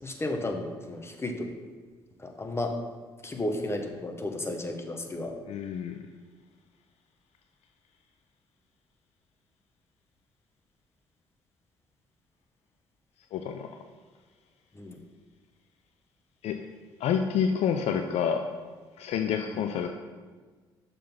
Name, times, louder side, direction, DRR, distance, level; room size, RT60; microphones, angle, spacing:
voice 1, 0.0-1.5 2.2-2.7 3.2-5.3 14.7-15.0 19.5-19.6, left 1 dB, 20° left, 4 dB, 1.1 m, -33 dB
voice 2, 5.5-6.0 13.3-13.7 16.4-16.6 17.0-18.4 19.0-19.9, left 7 dB, 60° left, 6 dB, 0.4 m, -28 dB
6.4 x 4.1 x 5.5 m, 1.4 s
hypercardioid pair, 50°, 12 cm